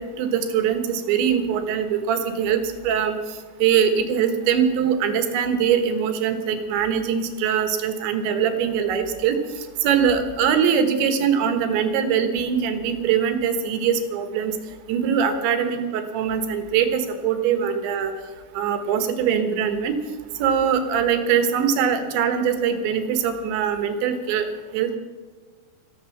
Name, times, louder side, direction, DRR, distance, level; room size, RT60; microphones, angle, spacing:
voice 1, 0.0-14.6 14.9-18.1 18.6-20.0 20.4-25.0, right 7 dB, 75° right, 8 dB, 3.5 m, -22 dB
14.5 x 13.5 x 7.2 m, 1.4 s
omnidirectional pair, 5.5 m